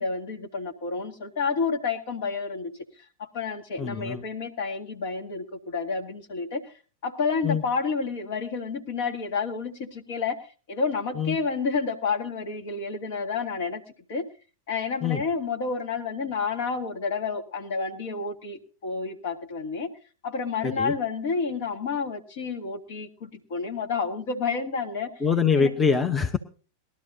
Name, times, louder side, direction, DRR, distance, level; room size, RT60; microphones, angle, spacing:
voice 1, 0.0-2.7 3.2-6.7 7.0-10.4 10.7-13.8 14.1-14.2 14.7-19.9 20.2-25.1 25.6-25.7, left 5 dB, 55° left, 5 dB, 1.7 m, -30 dB
voice 2, 3.8-4.2 7.4-7.6 11.2-11.4 15.0-15.2 20.6-20.9 25.2-26.4, left 6 dB, 15° left, 7 dB, 0.9 m, -24 dB
20.0 x 12.5 x 2.7 m, 0.36 s
figure-of-eight pair, 90°, 0 cm